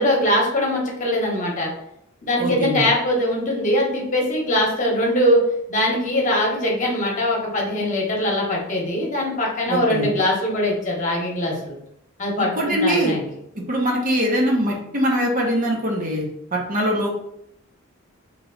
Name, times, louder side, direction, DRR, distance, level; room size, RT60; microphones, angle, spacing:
voice 1, 0.0-1.7 2.2-5.4 5.7-11.8 12.2-13.2, left 1 dB, 35° left, -3 dB, 1.0 m, -22 dB
voice 2, 2.4-2.8 9.7-10.1 12.4-13.2 13.7-16.2 16.5-17.1, equal, 40° right, -2 dB, 0.8 m, -22 dB
3.1 x 2.9 x 3.8 m, 0.76 s
head